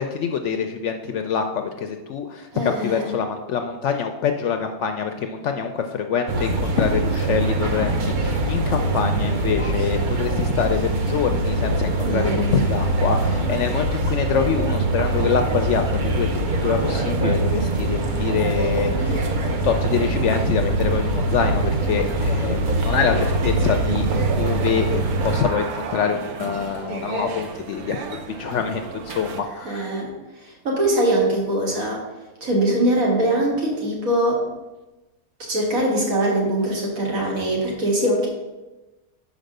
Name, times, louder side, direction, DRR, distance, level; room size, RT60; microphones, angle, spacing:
voice 1, 0.0-24.1 24.4-28.0 28.4-29.9, left 6 dB, 65° left, 6 dB, 0.7 m, -25 dB
voice 2, 2.5-3.1 12.0-12.8 29.6-30.1 30.4-32.0 32.4-34.5 35.4-38.3, right 1 dB, 65° right, -2 dB, 2.3 m, -22 dB
sound 1, 6.3-25.4, right 2 dB, 45° right, 0.7 m, -23 dB
sound 2, 21.9-29.4, right 4 dB, 85° right, 1.3 m, -33 dB
5.2 x 5.1 x 6.5 m, 1.1 s
omnidirectional pair, 1.5 m